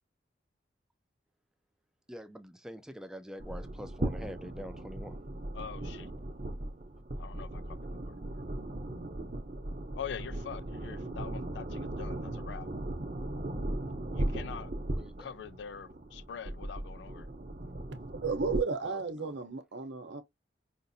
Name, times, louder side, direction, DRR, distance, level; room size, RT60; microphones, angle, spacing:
voice 1, 2.1-5.2 14.9-15.3 18.8-19.4, equal, 5° right, 0.4 m, -45 dB
sound 1, 3.4-18.6, right 1 dB, 45° right, 0.8 m, -38 dB
voice 2, 5.5-6.1 7.2-8.6 9.9-12.7 14.1-14.7 15.2-17.3, left 7 dB, 70° left, 0.4 m, -44 dB
voice 3, 17.9-20.2, right 4 dB, 75° right, 0.8 m, -34 dB
5.1 x 2.6 x 2.6 m
head